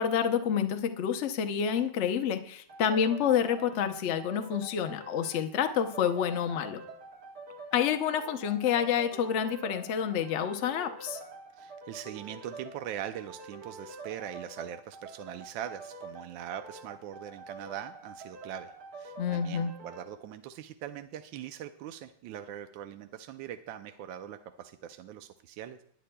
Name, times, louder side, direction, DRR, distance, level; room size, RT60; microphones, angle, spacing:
voice 1, 0.0-6.8 7.7-11.2 19.2-19.7, left 8 dB, 75° left, 7 dB, 0.6 m, -28 dB
sound 1, 2.7-20.1, right 3 dB, 50° right, 1.9 m, -46 dB
voice 2, 11.6-25.8, right 10 dB, 75° right, 8 dB, 1.2 m, -42 dB
19.5 x 10.0 x 2.2 m, 0.63 s
omnidirectional pair, 2.4 m